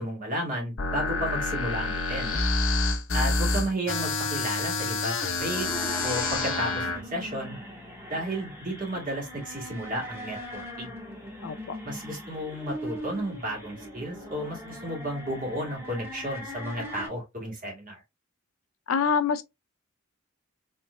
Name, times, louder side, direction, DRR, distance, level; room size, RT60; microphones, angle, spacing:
voice 1, 0.0-2.3 3.1-5.7 6.0-7.6 8.1-10.9 11.8-18.0, right 1 dB, 45° right, 1.9 m, -33 dB
sound 1, 0.8-7.0, left 3 dB, 65° left, 0.9 m, -28 dB
sound 2, 5.3-17.1, equal, 10° right, 1.7 m, -40 dB
voice 2, 11.4-11.8 18.9-19.4, left 6 dB, 85° left, 0.5 m, -25 dB
4.4 x 3.0 x 2.2 m
head